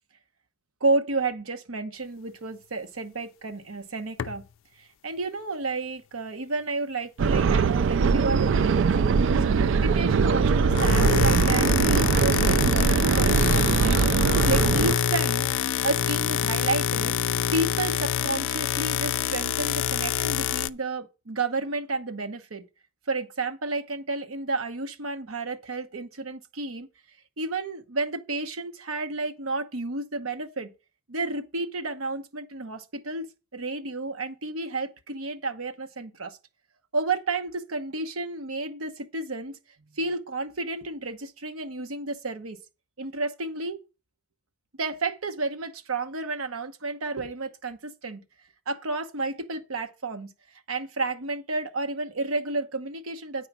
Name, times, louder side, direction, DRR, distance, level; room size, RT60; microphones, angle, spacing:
voice 1, 0.8-4.4 4.8-8.9 9.4-15.5 15.8-22.6 23.1-26.9 27.4-30.7 31.1-36.4 36.9-39.6 39.9-42.6 43.0-43.8 44.8-48.2 48.7-50.3 50.7-53.5, right 3 dB, 75° right, 1.0 m, -31 dB
sound 1, 4.2-4.4 10.5-20.7, left 9 dB, 65° left, 0.3 m, -26 dB
sound 2, 7.2-14.9, right 5 dB, 60° right, 0.3 m, -21 dB
9.0 x 4.7 x 6.0 m
head